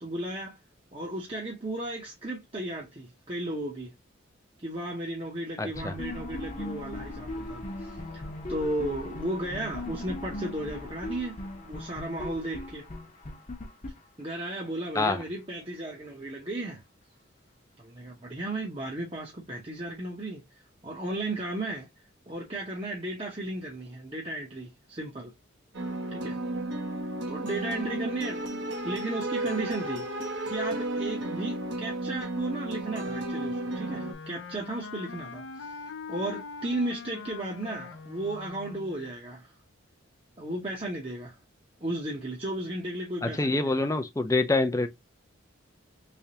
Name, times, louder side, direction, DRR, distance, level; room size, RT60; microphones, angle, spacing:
voice 1, 0.0-0.6 0.9-3.9 4.6-8.2 8.5-12.9 14.2-16.8 17.8-20.4 20.8-21.9 22.3-25.3 26.1-26.4 27.3-30.0 30.4-35.8 36.1-39.5 40.4-41.4 41.8-43.8, right 1 dB, 25° right, 0.8 m, -35 dB
voice 2, 5.6-5.9 14.9-15.2 43.2-44.9, left 2 dB, 15° left, 0.5 m, -26 dB
sound 1, 5.7-14.6, left 1 dB, 40° left, 0.9 m, -38 dB
sound 2, 25.7-34.1, right 1 dB, 60° right, 1.0 m, -33 dB
Wind instrument woodwind instrument, 33.8-39.1, left 4 dB, 75° left, 0.5 m, -42 dB
3.4 x 3.3 x 2.8 m
head